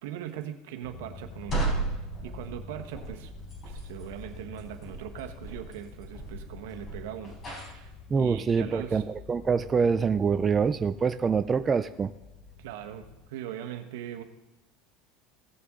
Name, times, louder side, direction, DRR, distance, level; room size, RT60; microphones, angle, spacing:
voice 1, 0.0-1.7 1.9-3.3 3.6-9.0 12.6-14.2, right 11 dB, 85° right, 5 dB, 1.2 m, -40 dB
sound 1, 0.8-13.3, left 5 dB, 60° left, 2.9 m, -47 dB
sound 2, 1.2-7.9, right 3 dB, 35° left, 4.3 m, -36 dB
voice 2, 8.1-12.1, right 5 dB, 25° right, 10 dB, 0.4 m, -25 dB
17.0 x 6.9 x 3.7 m, 1.1 s
supercardioid pair, 120°, 0 cm